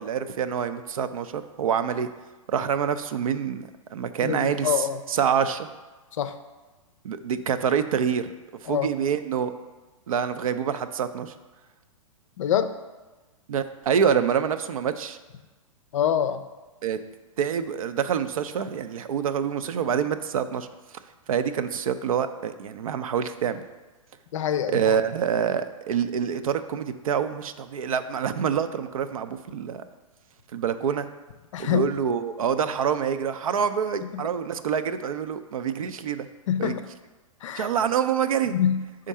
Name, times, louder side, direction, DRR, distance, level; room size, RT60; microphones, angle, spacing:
voice 1, 0.0-2.1 2.5-4.7 5.1-5.7 7.0-8.3 8.6-9.5 10.1-11.3 13.5-15.2 16.8-17.0 17.4-20.7 21.3-23.6 24.7-29.8 30.5-31.1 31.6-36.3 36.6-36.7 37.6-38.5, right 7 dB, 75° right, 11 dB, 0.5 m, -26 dB
voice 2, 4.2-5.0 6.2-6.4 8.7-8.9 12.4-12.7 15.9-16.4 24.3-24.9 31.5-31.9 34.1-34.3 36.5-36.8 37.4-37.7 38.5-38.8, left 9 dB, 60° left, 10 dB, 0.5 m, -25 dB
5.1 x 3.7 x 5.5 m, 1.2 s
hypercardioid pair, 120°, 18 cm